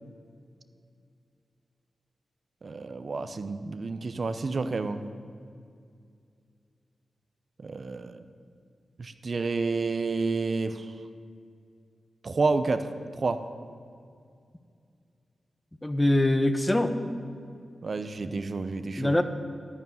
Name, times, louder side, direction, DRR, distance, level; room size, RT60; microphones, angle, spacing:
voice 1, 2.6-5.0 7.6-8.2 9.0-10.9 12.2-12.9 13.2-13.4 17.8-19.1, right 3 dB, 50° right, 10 dB, 0.7 m, -29 dB
voice 2, 15.8-16.9 19.0-19.2, left 1 dB, 15° left, 9 dB, 0.9 m, -23 dB
11.0 x 11.0 x 9.2 m, 2.3 s
wide cardioid pair, 100°, 0 cm